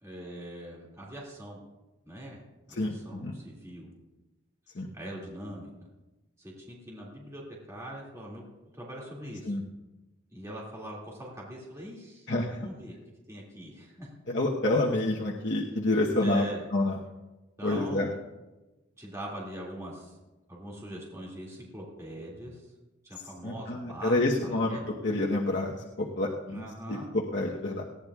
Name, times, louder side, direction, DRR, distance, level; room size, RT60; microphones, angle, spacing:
voice 1, 0.0-1.6 2.0-2.4 2.7-3.9 4.9-5.9 6.4-7.4 7.7-8.4 8.7-9.6 10.3-12.3 12.6-13.0 13.3-14.1 16.2-16.6 17.6-18.2 19.0-20.2 20.5-22.7 23.0-25.2 26.5-27.1, right 1 dB, 15° right, -4 dB, 2.3 m, -42 dB
voice 2, 2.7-3.3 4.7-4.9 9.5-9.6 12.3-12.6 14.3-16.5 16.7-17.0 17.6-18.1 23.4-24.8 25.0-27.8, left 2 dB, 55° left, -2 dB, 1.1 m, -28 dB
19.0 x 15.0 x 2.4 m, 1.1 s
head